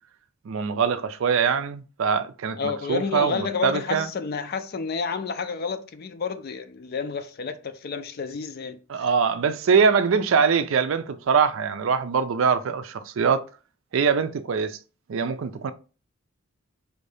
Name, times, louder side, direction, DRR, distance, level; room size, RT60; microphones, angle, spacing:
voice 1, 0.5-4.1 8.9-13.4 13.9-14.8 15.1-15.7, right 6 dB, 65° right, 0.4 m, -23 dB
voice 2, 2.6-8.8, left 5 dB, 45° left, 0.4 m, -30 dB
4.5 x 2.6 x 3.3 m
head